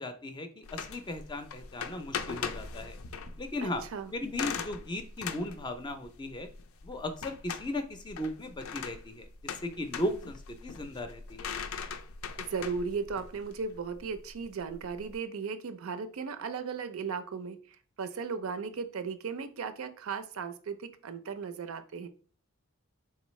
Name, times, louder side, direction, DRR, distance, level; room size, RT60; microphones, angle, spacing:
voice 1, 0.0-3.0 3.4-3.9 4.1-6.5 6.8-11.5, left 1 dB, 20° left, 8 dB, 0.4 m, -37 dB
sound 1, 0.6-15.1, left 6 dB, 80° left, 0.4 m, -41 dB
voice 2, 3.6-4.1 12.4-17.6 18.0-22.1, right 5 dB, 85° right, 10 dB, 0.5 m, -36 dB
4.0 x 3.6 x 3.0 m, 0.40 s
head